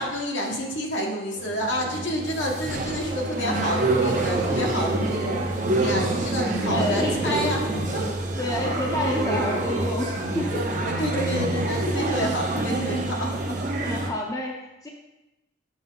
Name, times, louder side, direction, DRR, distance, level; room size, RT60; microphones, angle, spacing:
voice 1, 0.0-5.4 5.7-7.6 10.8-13.5, equal, 75° left, -1 dB, 1.5 m, -29 dB
sound 1, 1.4-14.1, right 2 dB, 40° right, 0.8 m, -26 dB
voice 2, 6.7-7.5 7.9-10.8 12.5-12.8 13.8-14.9, left 1 dB, 20° left, 0 dB, 0.7 m, -30 dB
7.0 x 6.0 x 3.9 m, 0.98 s
head